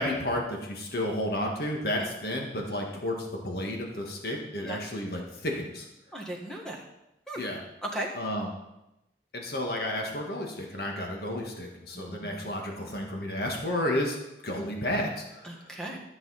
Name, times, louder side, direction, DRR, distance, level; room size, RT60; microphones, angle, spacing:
voice 1, 0.0-5.8 7.4-7.6 8.1-8.5 9.3-14.2 14.4-15.5, left 1 dB, 60° left, 1 dB, 1.6 m, -32 dB
voice 2, 6.1-6.8 7.3-7.4 7.8-8.1 11.9-12.5 15.4-16.0, right 1 dB, 5° left, -1 dB, 1.4 m, -37 dB
13.0 x 6.9 x 4.1 m, 0.92 s
head